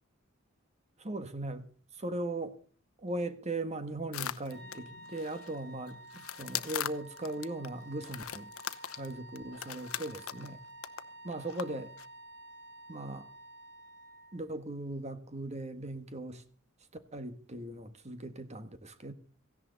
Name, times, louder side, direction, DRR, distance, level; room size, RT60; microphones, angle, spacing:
voice 1, 1.0-1.7 2.0-2.6 3.0-8.5 9.0-10.6 11.2-11.9 12.9-13.3 14.3-16.4 17.1-19.1, right 2 dB, 35° right, 1.6 m, -38 dB
sound 1, 4.1-5.5 5.9-7.7 8.0-10.5 10.8-11.0 11.3-11.6 12.0-12.1, left 10 dB, 90° left, 0.8 m, -40 dB
sound 2, 4.5-14.5, right 1 dB, 60° right, 5.9 m, -51 dB
17.0 x 15.5 x 4.1 m
head